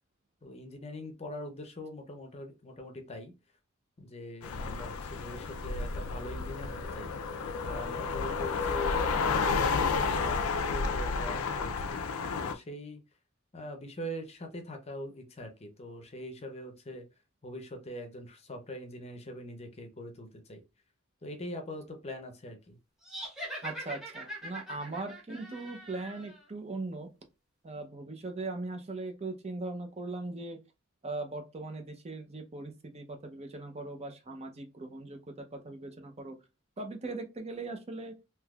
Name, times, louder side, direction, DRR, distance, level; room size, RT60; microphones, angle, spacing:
voice 1, 0.4-3.3 4.0-7.1 7.6-12.0 12.4-13.0 13.5-17.1 17.4-20.6 21.2-22.8, equal, 30° left, 0.6 m, -42 dB
sound 1, 4.4-12.5, left 5 dB, 75° left, 0.4 m, -31 dB
sound 2, 23.0-26.4, right 1 dB, ahead, 1.0 m, -42 dB
voice 2, 23.6-27.1 27.6-30.6 31.0-36.4 36.8-38.1, right 2 dB, 30° right, 0.6 m, -39 dB
3.7 x 2.8 x 2.3 m
head